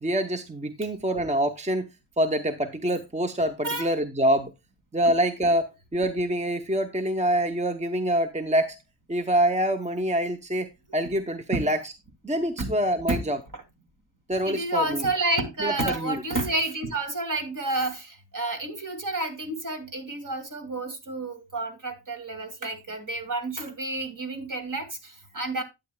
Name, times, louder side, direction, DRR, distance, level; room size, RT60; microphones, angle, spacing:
voice 1, 0.0-1.9 2.2-4.5 4.9-8.8 9.1-11.9 12.2-13.4 14.3-15.1 15.6-16.2, right 1 dB, 15° right, 0.8 m, -26 dB
voice 2, 14.5-25.6, right 2 dB, 45° right, 2.5 m, -30 dB
11.5 x 9.1 x 2.2 m
wide cardioid pair, 110°, 45 cm